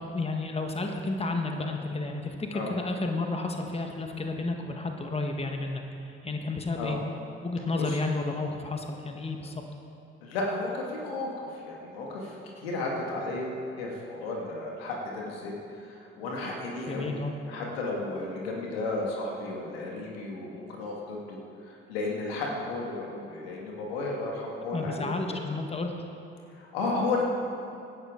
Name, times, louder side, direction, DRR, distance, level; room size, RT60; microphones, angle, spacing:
voice 1, 0.0-7.0 7.4-9.6 16.9-17.3 24.7-25.9, left 3 dB, 20° left, 3 dB, 1.4 m, -32 dB
voice 2, 10.2-17.2 17.5-25.2 26.5-27.2, left 2 dB, 80° left, -1 dB, 2.0 m, -33 dB
18.0 x 10.5 x 3.8 m, 2.7 s
figure-of-eight pair, 50°, 30 cm